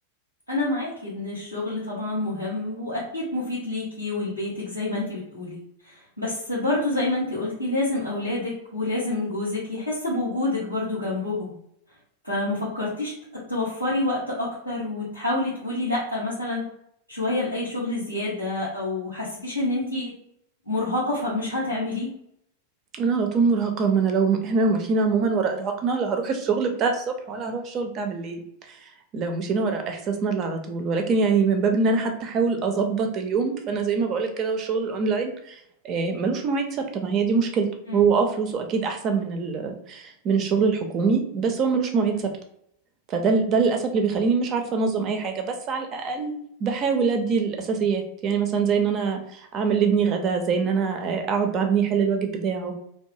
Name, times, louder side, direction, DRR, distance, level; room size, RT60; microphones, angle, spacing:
voice 1, 0.5-11.5 12.2-16.7 17.1-20.1 20.7-22.1 37.9-38.1 42.1-42.3, left 2 dB, 90° right, -8 dB, 1.0 m, -28 dB
voice 2, 23.0-28.4 29.1-35.6 35.8-37.7 37.9-42.1 43.1-52.7, right 5 dB, 35° right, 5 dB, 0.5 m, -24 dB
2.6 x 2.3 x 2.6 m, 0.74 s
figure-of-eight pair, 90°, 0 cm